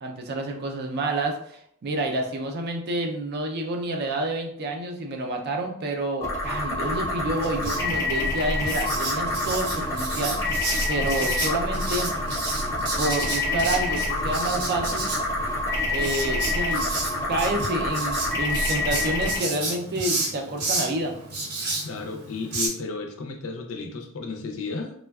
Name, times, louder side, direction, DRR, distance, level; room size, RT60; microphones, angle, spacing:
voice 1, 0.0-10.4 10.9-12.1 13.0-15.1 15.9-16.9 17.3-21.2, right 1 dB, 45° right, 3 dB, 0.4 m, -29 dB
sound 1, 6.2-19.4, left 2 dB, 15° left, 0.6 m, -27 dB
Writing, 7.4-22.7, right 2 dB, 85° right, 0.8 m, -32 dB
voice 2, 21.8-24.9, left 4 dB, 65° left, 3 dB, 0.5 m, -33 dB
3.2 x 2.1 x 2.2 m, 0.68 s
head